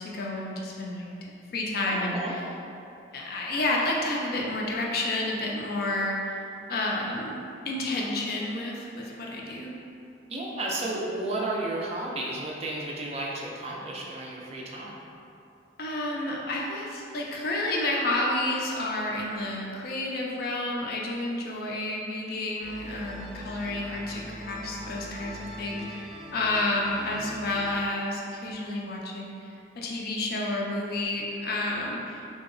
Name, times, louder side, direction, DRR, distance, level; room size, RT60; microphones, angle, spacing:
voice 1, 0.0-2.2 3.1-6.4 6.7-9.8 15.8-32.2, left 2 dB, 50° left, -2 dB, 0.4 m, -30 dB
voice 2, 1.9-2.3 10.3-15.0, right 2 dB, 30° right, -3 dB, 0.3 m, -32 dB
sound 1, 22.6-27.8, equal, 5° right, 0.7 m, -42 dB
3.1 x 2.7 x 2.5 m, 2.6 s
head